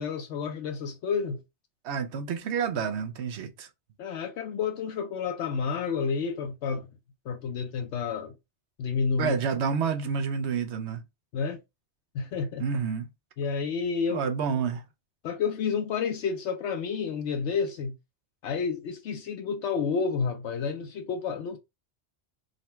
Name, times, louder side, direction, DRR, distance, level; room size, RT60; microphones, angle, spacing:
voice 1, 0.0-1.4 4.0-6.9 7.3-8.3 8.8-9.4 11.3-11.6 12.1-12.7 13.4-14.2 15.2-17.9 18.4-21.6, left 5 dB, 75° left, 0.9 m, -30 dB
voice 2, 1.8-3.7 9.2-11.0 12.6-13.1 14.1-14.8, right 6 dB, 75° right, 0.9 m, -29 dB
3.9 x 2.2 x 4.2 m
omnidirectional pair, 1.2 m